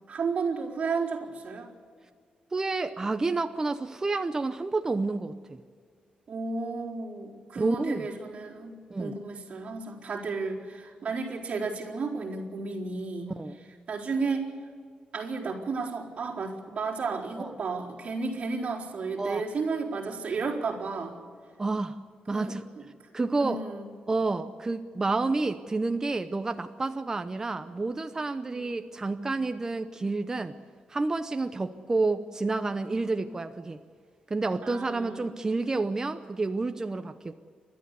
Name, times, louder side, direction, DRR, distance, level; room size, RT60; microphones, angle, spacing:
voice 1, 0.1-1.7 6.3-13.3 13.9-14.6 15.1-21.2 22.3-22.8 23.4-23.9 28.5-28.7 34.6-35.3, right 4 dB, 45° right, -4 dB, 4.2 m, -33 dB
voice 2, 2.5-5.6 7.6-8.1 8.9-9.1 13.4-13.5 17.4-17.5 19.2-19.4 21.6-22.0 22.3-22.6 23.1-23.6 24.1-30.5 30.9-33.8 34.3-37.3, right 3 dB, 20° right, 8 dB, 0.7 m, -29 dB
29.5 x 12.5 x 8.3 m, 2.1 s
wide cardioid pair, 135°, 3 cm